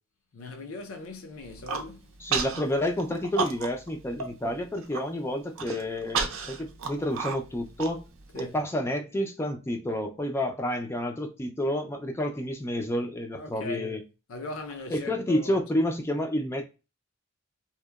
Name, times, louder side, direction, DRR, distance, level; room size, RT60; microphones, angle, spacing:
voice 1, 0.3-2.1 8.3-8.5 13.4-14.0 14.3-15.6, left 2 dB, 90° left, 0.5 m, -39 dB
Human voice, 1.4-1.9 2.3-2.6 3.0-3.9 4.2-4.3 4.7-5.0 5.5-8.4, right 5 dB, 85° right, 0.5 m, -31 dB
voice 2, 2.2-8.0 8.3-14.0 14.9-16.6, left 1 dB, 15° left, 0.3 m, -29 dB
2.8 x 2.1 x 2.2 m
head